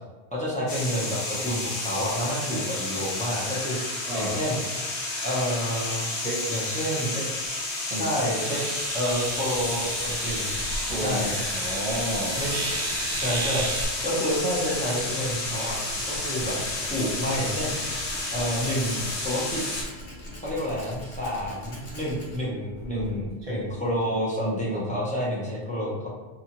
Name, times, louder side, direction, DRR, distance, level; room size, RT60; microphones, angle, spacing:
voice 1, 0.3-4.6 5.2-6.1 6.5-7.1 7.9-8.6 8.9-10.6 10.9-11.4 12.4-12.5 13.1-13.7 14.0-15.8 16.1-16.6 16.8-17.7 18.3-19.6 20.4-26.1, equal, 10° left, -7 dB, 0.5 m, -29 dB
sound 1, 0.7-19.8, left 2 dB, 65° left, 1.0 m, -31 dB
voice 2, 4.0-4.4 6.2-6.4 7.1-7.2 7.9-8.1 10.9-12.7 22.9-23.6 24.4-24.9, right 1 dB, 35° right, -6 dB, 1.0 m, -32 dB
sound 2, 8.3-13.9, right 3 dB, 85° right, 0.9 m, -34 dB
Tools, 9.0-24.2, equal, 80° left, 1.2 m, -41 dB
2.7 x 2.4 x 2.9 m, 1.3 s
omnidirectional pair, 1.1 m